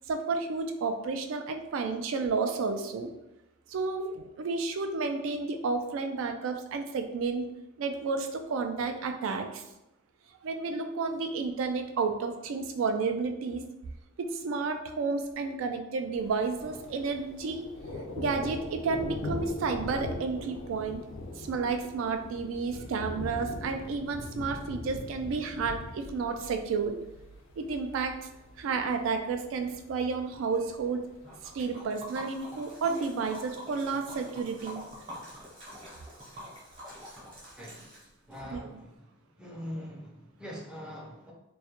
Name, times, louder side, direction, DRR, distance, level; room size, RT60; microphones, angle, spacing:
voice 1, 0.1-3.1 3.7-7.5 7.8-9.6 10.4-13.7 14.2-17.7 18.2-21.0 21.4-27.0 27.6-28.2 28.6-31.1 31.5-34.8 38.5-38.7, right 4 dB, 75° right, 6 dB, 0.3 m, -31 dB
Thunder, 16.2-31.7, left 2 dB, 70° left, 0.3 m, -41 dB
Liquid, 31.2-38.4, equal, 25° right, 0.8 m, -46 dB
voice 2, 37.6-37.9 38.3-39.1 39.4-41.3, equal, 5° right, -3 dB, 0.4 m, -42 dB
2.2 x 2.1 x 2.8 m, 0.91 s
head